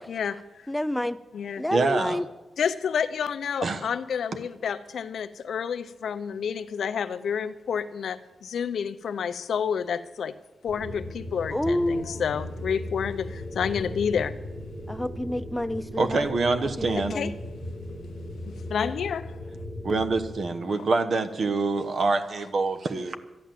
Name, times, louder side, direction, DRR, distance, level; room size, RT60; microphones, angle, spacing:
voice 1, 0.1-0.7 1.3-1.6 2.6-10.4 10.6-14.3 17.0-17.3 18.5-19.4 20.6-20.8, left 7 dB, 85° left, 0.7 m, -30 dB
voice 2, 0.7-1.2 1.6-2.3 11.5-12.2 14.9-16.3 16.8-17.3, left 1 dB, 5° left, 0.4 m, -28 dB
voice 3, 1.7-2.2 3.6-3.8 16.0-17.1 19.8-23.2, right 3 dB, 50° right, 1.0 m, -25 dB
sound 1, 10.7-20.4, left 1 dB, 80° right, 5.1 m, -37 dB
13.0 x 11.0 x 7.6 m
wide cardioid pair, 170°, 0 cm